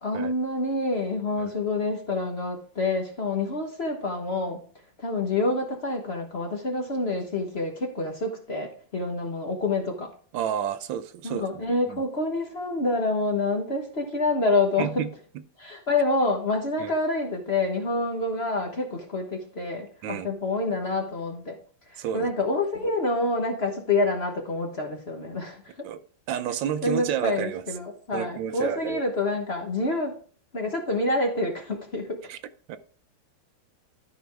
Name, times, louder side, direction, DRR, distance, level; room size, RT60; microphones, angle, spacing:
voice 1, 0.0-4.6 5.0-10.1 11.2-15.0 15.6-21.6 21.9-25.9 26.8-30.2 30.5-32.2, left 2 dB, 40° left, 1.2 m, -27 dB
voice 2, 10.3-12.0 14.8-15.1 16.8-16.9 20.0-20.3 22.0-22.3 25.8-26.0 26.3-27.6 28.1-29.0 32.3-32.4 32.7-32.8, right 9 dB, 75° right, 1.4 m, -30 dB
12.5 x 5.2 x 3.4 m
omnidirectional pair, 2.1 m